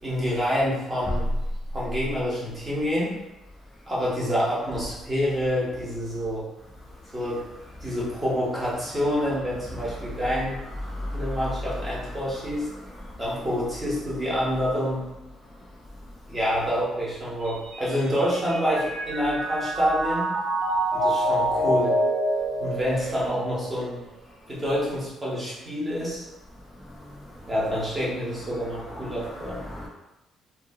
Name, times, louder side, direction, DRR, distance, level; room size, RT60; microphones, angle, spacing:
voice 1, 0.0-1.4 1.7-3.1 3.9-6.5 7.1-7.4 7.8-10.6 11.1-12.7 13.2-15.1 16.3-20.3 20.9-22.0 22.6-24.0 24.5-26.2 27.5-29.6, equal, 15° right, -7 dB, 0.9 m, -27 dB
voice 2, 10.9-11.5 13.0-13.2 26.9-27.5 29.0-29.9, left 1 dB, 5° left, -5 dB, 0.3 m, -36 dB
Mallet percussion, 17.5-23.9, right 1 dB, 85° right, 0.5 m, -27 dB
2.6 x 2.3 x 2.6 m, 0.98 s
cardioid pair, 150°, 0 cm